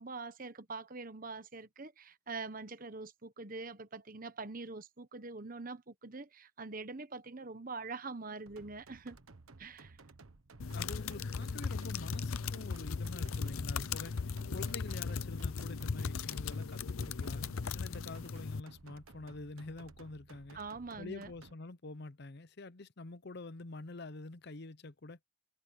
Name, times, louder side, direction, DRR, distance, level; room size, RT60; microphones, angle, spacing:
voice 1, 0.0-9.2 9.6-10.0 20.5-21.3, right 3 dB, 40° right, 1.1 m, -44 dB
sound 1, 8.5-21.5, right 3 dB, 90° right, 1.3 m, -57 dB
sound 2, 10.6-18.6, left 5 dB, 85° left, 0.6 m, -37 dB
voice 2, 10.7-17.4 17.7-20.6 21.0-25.2, left 2 dB, 55° left, 0.7 m, -47 dB
head